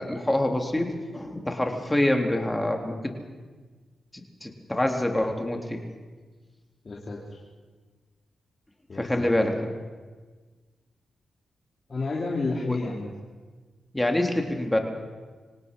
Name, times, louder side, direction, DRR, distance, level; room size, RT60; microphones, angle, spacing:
voice 1, 0.0-3.1 4.1-5.8 9.0-9.7 12.7-12.8 13.9-14.8, left 1 dB, 15° left, 3 dB, 3.7 m, -26 dB
voice 2, 6.8-7.4 8.9-9.3 11.9-13.1, left 3 dB, 50° left, -4 dB, 3.6 m, -31 dB
26.0 x 18.0 x 5.6 m, 1.4 s
supercardioid pair, 50°, 0 cm